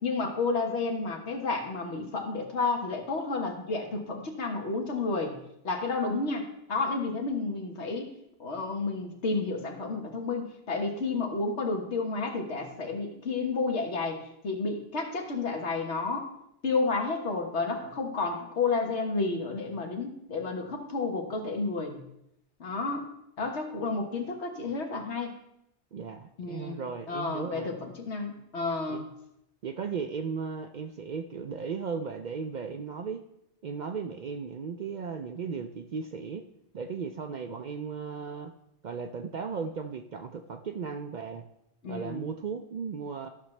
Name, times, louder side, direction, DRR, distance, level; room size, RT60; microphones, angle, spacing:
voice 1, 0.0-5.4 5.6-8.1 8.4-16.3 16.6-22.1 22.6-23.0 23.4-25.3 26.4-26.8 27.1-29.1 41.8-42.3, left 3 dB, 75° left, 3 dB, 1.5 m, -31 dB
voice 2, 25.9-27.8 28.9-29.0 29.6-33.2 33.6-36.4 36.7-38.5 38.8-41.4 41.9-43.3, right 5 dB, 55° right, 6 dB, 0.5 m, -36 dB
13.0 x 6.1 x 3.2 m, 0.80 s
omnidirectional pair, 1.2 m